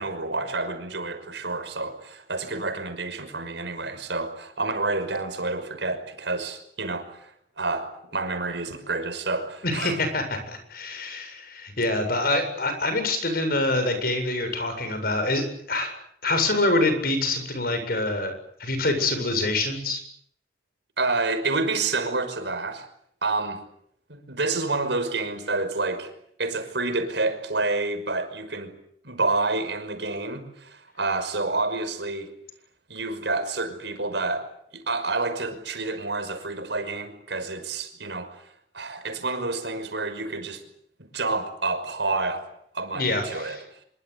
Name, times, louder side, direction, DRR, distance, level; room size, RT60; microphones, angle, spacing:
voice 1, 0.0-10.0 21.0-22.9 23.2-23.6 24.1-26.1 26.4-28.7 29.0-32.3 32.9-34.5 34.7-38.5 38.7-40.6 41.0-42.5 42.7-43.6, right 3 dB, 75° right, 5.7 m, -29 dB
voice 2, 9.6-15.9 16.2-18.3 18.6-20.0 42.9-43.6, left 2 dB, 55° left, 7.7 m, -25 dB
26.0 x 23.5 x 8.5 m
head